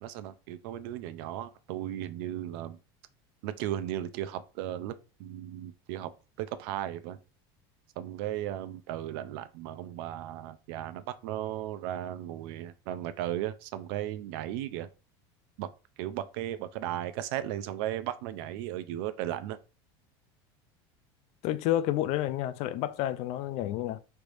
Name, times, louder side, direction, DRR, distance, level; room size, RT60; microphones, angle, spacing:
voice 1, 0.0-2.8 3.4-4.9 5.2-6.1 6.4-7.2 8.0-14.9 15.6-15.7 16.0-19.6, right 12 dB, 75° right, 0.4 m, -36 dB
voice 2, 21.4-24.0, left 13 dB, 60° left, 0.4 m, -30 dB
3.3 x 3.1 x 2.5 m
supercardioid pair, 110°, 13 cm